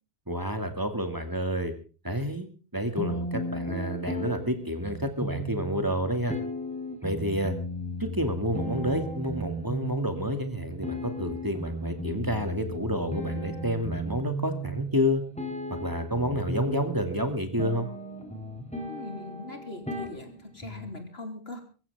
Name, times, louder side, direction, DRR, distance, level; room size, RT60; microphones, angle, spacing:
voice 1, 0.3-1.7 2.0-6.4 7.0-7.6 8.0-15.2 15.8-17.9, equal, 20° right, 7 dB, 2.4 m, -29 dB
sound 1, 3.0-21.0, equal, 5° left, 3.4 m, -36 dB
voice 2, 18.9-21.6, left 2 dB, 70° left, 6 dB, 3.7 m, -41 dB
23.0 x 15.0 x 3.6 m, 0.36 s
omnidirectional pair, 1.1 m